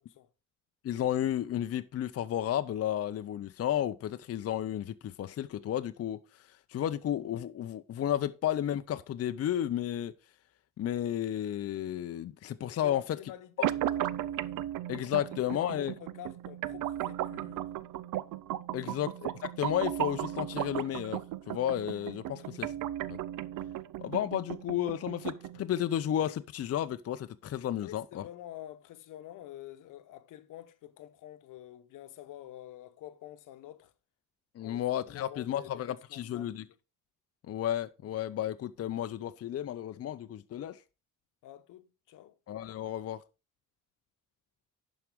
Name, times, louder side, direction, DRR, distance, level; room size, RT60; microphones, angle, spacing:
voice 1, 0.8-6.2 6.7-10.1 10.8-13.0 13.6-13.7 14.9-15.9 18.7-22.7 23.1-23.2 24.0-28.3 34.5-36.6 37.4-40.8 42.5-43.2, left 11 dB, 50° left, 0.6 m, -32 dB
voice 2, 12.8-14.5 15.2-17.7 22.3-22.5 27.8-33.9 34.6-35.8 36.1-36.8 41.4-42.4, left 13 dB, 80° left, 1.0 m, -48 dB
sound 1, 13.6-25.6, right 13 dB, 80° right, 0.6 m, -36 dB
11.0 x 4.9 x 4.7 m
cardioid pair, 90°, 31 cm